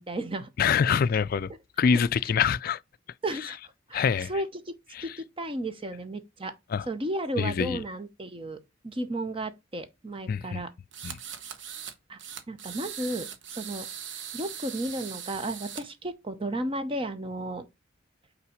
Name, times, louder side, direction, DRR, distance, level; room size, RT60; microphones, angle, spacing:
voice 1, 0.0-0.5 1.9-2.0 3.2-3.6 3.9-4.7 5.0-6.5 6.9-10.7 12.1-12.2 12.5-13.9 14.3-17.7, right 1 dB, 25° right, 0.8 m, -33 dB
voice 2, 0.6-1.5 1.8-2.8 3.9-4.3 4.9-5.1 6.7-6.9 7.4-7.8 10.3-10.6 11.0-11.2, left 6 dB, 45° left, 0.3 m, -25 dB
sound 1, 10.9-11.9 12.2-15.8, right 8 dB, 65° right, 0.9 m, -40 dB
5.6 x 4.1 x 5.0 m
head